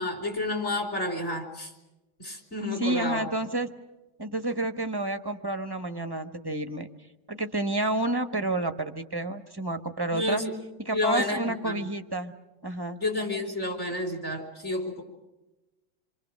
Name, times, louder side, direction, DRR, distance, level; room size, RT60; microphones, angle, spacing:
voice 1, 0.0-1.7 2.2-3.3 10.1-10.5 10.9-11.8 13.0-15.0, left 2 dB, 35° left, 4 dB, 4.6 m, -30 dB
voice 2, 2.8-3.7 4.2-6.9 7.3-10.4 10.8-12.3 12.6-13.0, right 2 dB, 20° right, 7 dB, 0.7 m, -30 dB
28.0 x 24.5 x 6.4 m, 1.0 s
omnidirectional pair, 2.1 m